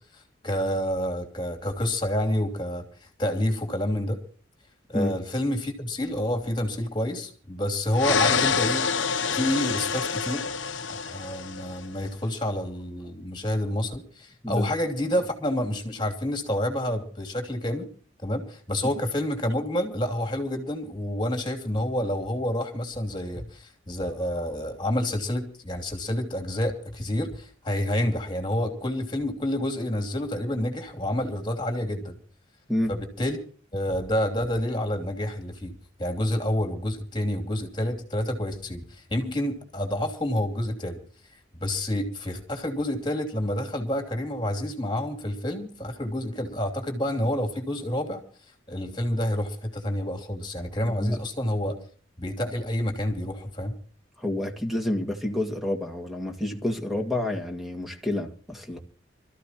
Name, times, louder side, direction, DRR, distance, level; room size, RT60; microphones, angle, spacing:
voice 1, 0.1-4.2 4.9-8.9 9.3-10.5 10.9-17.9 18.2-32.2 32.9-33.4 33.7-41.0 41.6-48.2 48.7-51.8 52.2-53.7, left 1 dB, 25° left, 3.0 m, -28 dB
sound 1, 7.9-11.9, left 5 dB, 70° left, 1.0 m, -26 dB
voice 2, 50.8-51.2 54.2-58.8, left 1 dB, ahead, 2.2 m, -29 dB
26.5 x 14.0 x 3.0 m
head